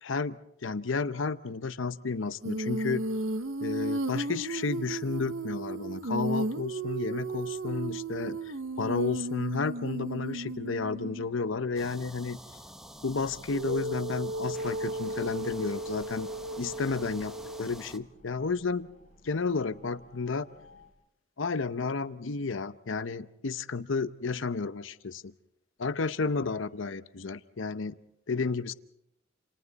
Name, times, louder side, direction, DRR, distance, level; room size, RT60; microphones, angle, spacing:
voice 1, 0.0-3.1 3.6-12.4 13.0-16.3 16.6-18.9 19.2-20.5 21.4-25.3 25.8-28.0 28.3-28.7, left 4 dB, 70° left, 13 dB, 0.8 m, -32 dB
Female singing, 2.4-11.3 13.5-17.7, right 2 dB, 75° right, 1.0 m, -34 dB
sound 1, 11.8-18.0, equal, 5° right, 1.1 m, -48 dB
sound 2, 13.0-20.9, left 1 dB, 40° left, 4.8 m, -58 dB
28.5 x 28.0 x 4.1 m, 0.79 s
head